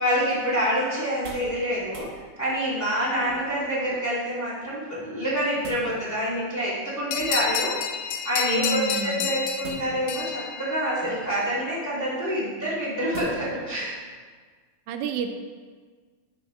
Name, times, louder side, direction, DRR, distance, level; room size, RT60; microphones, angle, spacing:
voice 1, 0.0-2.1 2.4-14.0, equal, 5° left, -10 dB, 1.7 m, -27 dB
sound 1, 1.0-1.6 1.9-2.1 3.2-3.7 5.2-5.9 7.1-7.6 9.6-10.2 11.0-11.5 13.1-13.6 14.1-14.2, right 2 dB, 50° right, 1.6 m, -42 dB
sound 2, 7.1-11.3, left 8 dB, 80° left, 2.0 m, -30 dB
voice 2, 8.5-9.5 14.9-15.3, right 4 dB, 85° right, 6 dB, 1.6 m, -30 dB
9.7 x 5.2 x 3.4 m, 1.5 s
omnidirectional pair, 3.8 m